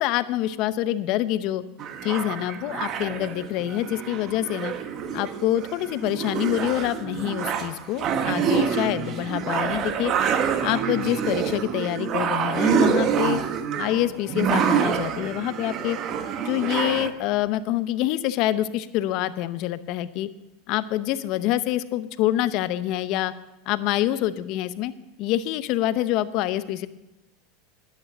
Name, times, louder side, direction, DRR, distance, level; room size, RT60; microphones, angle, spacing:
voice 1, 0.0-1.6 2.0-4.7 5.1-10.1 10.6-13.4 13.8-16.0 16.4-20.3 20.7-23.3 23.7-24.9 25.2-26.9, left 13 dB, 55° left, 14 dB, 0.7 m, -26 dB
sound 1, 1.8-17.1, right 7 dB, 40° right, 1.2 m, -26 dB
11.5 x 9.2 x 6.4 m, 0.95 s
supercardioid pair, 115°, 0 cm